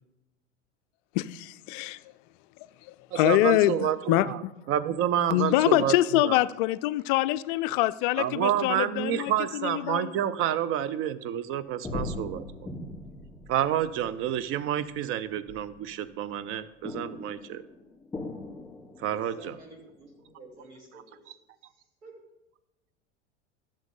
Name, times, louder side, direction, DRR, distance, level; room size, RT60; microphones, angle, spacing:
voice 1, 1.1-2.0 2.8-4.3 5.3-10.1, left 16 dB, 45° left, 0.4 m, -25 dB
voice 2, 3.1-4.4 4.7-6.4 8.2-12.7 13.5-17.6 19.0-19.5, right 10 dB, 40° right, 0.6 m, -29 dB
sound 1, 11.8-16.0 16.8-20.2 20.5-20.6, left 2 dB, 10° left, 3.3 m, -40 dB
voice 3, 19.1-21.3 21.7-22.1, right 2 dB, 70° right, 2.9 m, -51 dB
14.5 x 6.5 x 3.7 m
figure-of-eight pair, 75°, 36 cm